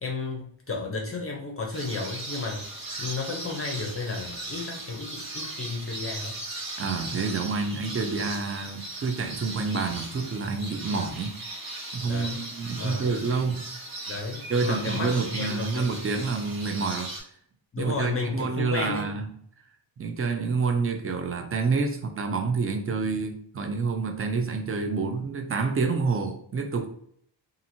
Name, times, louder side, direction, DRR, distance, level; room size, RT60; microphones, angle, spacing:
voice 1, 0.0-6.3 12.0-12.4 12.7-13.1 14.1-15.9 17.7-19.0, left 3 dB, 30° left, 0 dB, 0.6 m, -33 dB
sound 1, 1.7-17.2, right 2 dB, 50° right, 1.2 m, -38 dB
voice 2, 6.8-11.3 11.9-13.6 14.5-17.1 17.8-19.3 20.0-26.9, right 4 dB, 30° right, 5 dB, 0.5 m, -28 dB
2.8 x 2.6 x 2.7 m, 0.64 s
cardioid pair, 100°, 47 cm